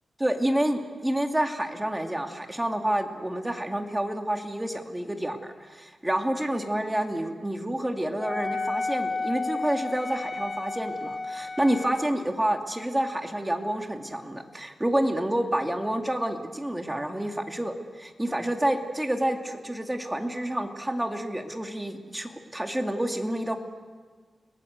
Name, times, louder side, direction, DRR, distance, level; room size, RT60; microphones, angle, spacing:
voice 1, 0.2-23.6, right 1 dB, 10° right, 4 dB, 2.4 m, -28 dB
Wind instrument woodwind instrument, 8.2-12.1, left 3 dB, 30° left, 1.0 m, -32 dB
30.0 x 21.0 x 8.1 m, 1.5 s
wide cardioid pair, 120°, 0 cm